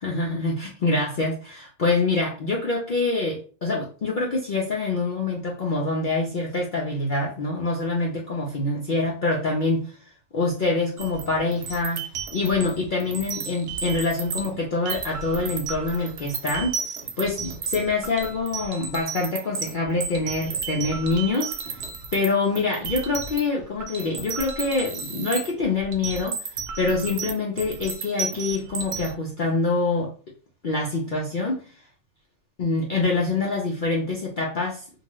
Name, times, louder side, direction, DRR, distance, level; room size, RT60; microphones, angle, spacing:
voice 1, 0.0-10.0 10.3-12.0 12.3-16.8 17.2-21.8 22.1-26.4 26.8-30.1 30.6-31.7 32.6-34.8, left 3 dB, 80° left, -2 dB, 0.4 m, -25 dB
sound 1, 11.0-14.6 14.9-22.3 22.6-29.1, right 5 dB, 70° right, 0.9 m, -33 dB
2.8 x 2.2 x 2.9 m, 0.37 s
omnidirectional pair, 1.5 m